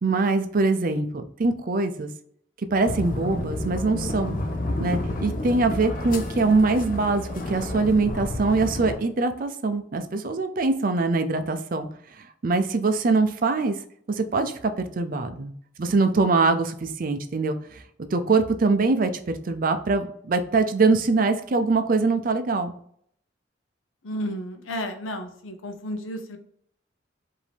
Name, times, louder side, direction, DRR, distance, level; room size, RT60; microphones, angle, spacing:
voice 1, 0.0-2.1 2.7-4.4 4.8-11.9 12.2-13.8 14.1-15.5 15.8-17.8 18.1-22.7, right 3 dB, 45° right, 9 dB, 0.5 m, -23 dB
sound 1, 2.9-9.0, left 1 dB, 45° left, 0.6 m, -30 dB
voice 2, 24.0-26.4, equal, 90° left, 6 dB, 0.7 m, -32 dB
5.0 x 2.7 x 3.4 m, 0.64 s
head